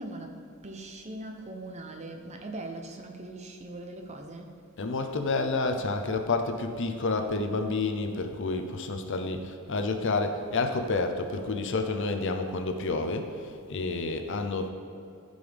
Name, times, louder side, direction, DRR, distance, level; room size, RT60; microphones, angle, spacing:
voice 1, 0.0-4.6 7.1-7.2, right 2 dB, 30° right, 4 dB, 0.8 m, -41 dB
voice 2, 4.8-14.7, left 3 dB, 60° left, 6 dB, 0.7 m, -29 dB
15.0 x 5.3 x 3.5 m, 2.5 s
head